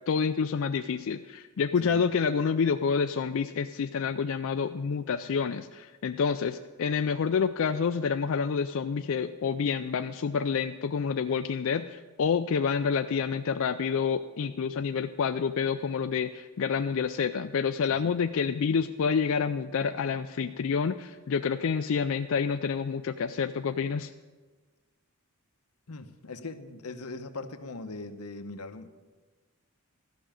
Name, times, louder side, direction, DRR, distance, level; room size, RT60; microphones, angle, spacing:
voice 1, 0.1-24.1, left 6 dB, 65° left, 8 dB, 0.4 m, -28 dB
voice 2, 25.9-28.9, left 3 dB, 90° left, 8 dB, 0.9 m, -40 dB
14.0 x 6.1 x 8.9 m, 1.3 s
head